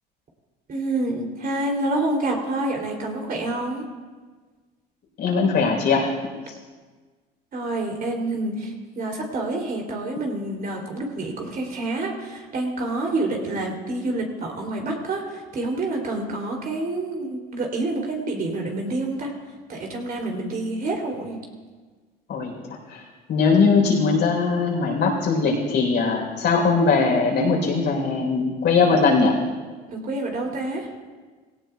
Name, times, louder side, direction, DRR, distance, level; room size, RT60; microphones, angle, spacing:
voice 1, 0.7-3.8 7.5-19.3 19.7-21.4 29.9-30.9, right 2 dB, 45° right, 0 dB, 3.0 m, -28 dB
voice 2, 5.2-6.1 22.3-22.5 22.9-23.0 23.3-29.3, left 4 dB, 60° left, 0 dB, 3.9 m, -20 dB
17.5 x 17.0 x 2.3 m, 1.4 s
supercardioid pair, 80°, 20 cm